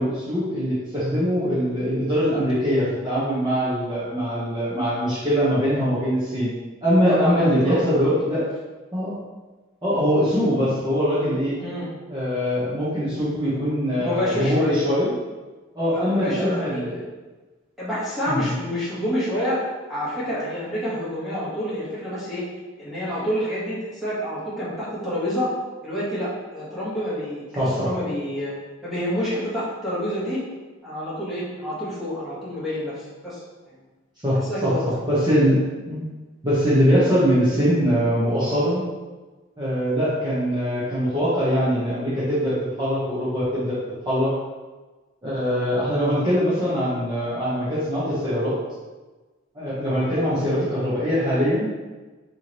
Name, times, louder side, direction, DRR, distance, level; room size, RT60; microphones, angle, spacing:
voice 1, 0.0-6.5 6.8-8.4 8.9-9.2 9.8-11.6 12.1-15.1 15.7-17.0 18.3-18.5 27.6-27.9 34.2-34.7 35.1-35.6 35.9-36.1 36.4-38.8 39.6-43.8 44.0-44.3 45.2-48.5 49.5-51.7, equal, 25° right, -13 dB, 1.1 m, -22 dB
voice 2, 7.1-8.4 11.6-11.9 14.0-14.8 15.9-16.8 17.8-19.6 19.9-22.4 22.8-25.5 25.8-28.5 28.8-30.4 30.8-33.4 33.7-33.8 34.3-34.8, equal, ahead, -11 dB, 1.2 m, -28 dB
4.7 x 3.1 x 3.0 m, 1.2 s
head